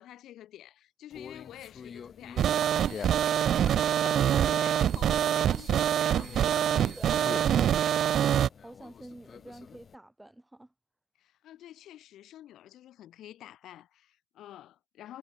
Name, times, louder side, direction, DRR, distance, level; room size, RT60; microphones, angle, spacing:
voice 1, 0.0-3.2 3.6-6.5 11.2-15.2, left 12 dB, 80° left, 1.6 m, -49 dB
Conversation, 1.1-10.0, left 7 dB, 50° left, 5.0 m, -47 dB
sound 1, 2.4-8.5, right 10 dB, 65° right, 0.3 m, -25 dB
voice 2, 6.9-10.7, right 1 dB, 10° right, 2.1 m, -48 dB
cardioid pair, 90°, 0 cm